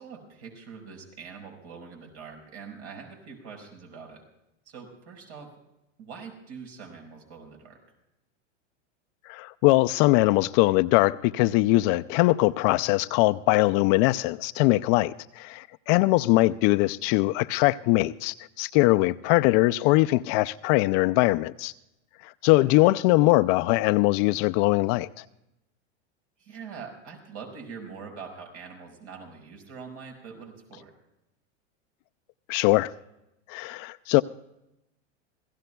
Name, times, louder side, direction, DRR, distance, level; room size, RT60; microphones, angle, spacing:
voice 1, 0.0-4.3 4.7-5.5 6.0-7.8 22.7-23.4 26.4-31.0, right 5 dB, 70° right, 5.7 m, -44 dB
voice 2, 9.3-21.7 22.2-25.2 32.5-32.9 33.5-34.2, left 20 dB, 45° left, 0.4 m, -22 dB
27.0 x 17.0 x 2.3 m
supercardioid pair, 120°, 36 cm